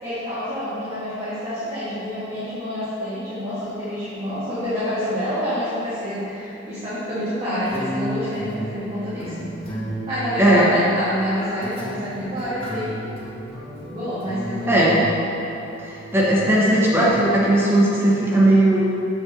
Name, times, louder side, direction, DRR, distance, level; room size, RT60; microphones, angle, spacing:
voice 1, 0.0-9.5 10.1-12.9 13.9-15.0 16.4-16.7, equal, 30° right, -13 dB, 1.9 m, -28 dB
sound 1, 7.6-17.1, equal, 30° left, 1.8 m, -34 dB
voice 2, 10.4-10.7 14.7-15.0 15.8-18.8, right 1 dB, 10° right, -7 dB, 1.0 m, -17 dB
7.3 x 4.4 x 6.8 m, 2.9 s
head